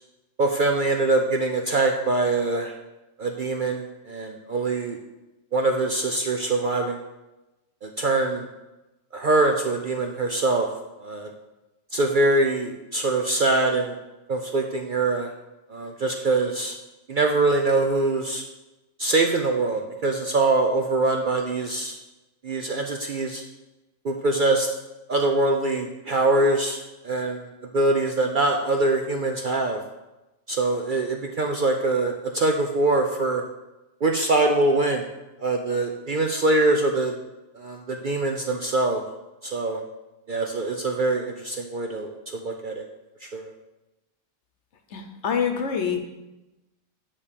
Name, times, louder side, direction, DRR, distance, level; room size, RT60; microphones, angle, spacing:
voice 1, 0.4-2.7 3.2-5.0 5.5-7.0 7.8-8.5 9.1-10.7 11.0-11.3 11.9-14.0 14.3-15.3 15.7-16.8 17.1-18.4 19.0-22.0 22.4-23.4 24.0-24.7 25.1-29.8 30.5-33.4 34.0-35.0 35.4-37.1 37.5-39.0 39.4-39.8 40.3-42.9 43.2-43.5, right 2 dB, 55° right, 3 dB, 0.6 m, -23 dB
voice 2, 44.9-46.1, left 7 dB, 60° left, 5 dB, 1.1 m, -26 dB
9.8 x 3.5 x 6.8 m, 1.0 s
omnidirectional pair, 1.4 m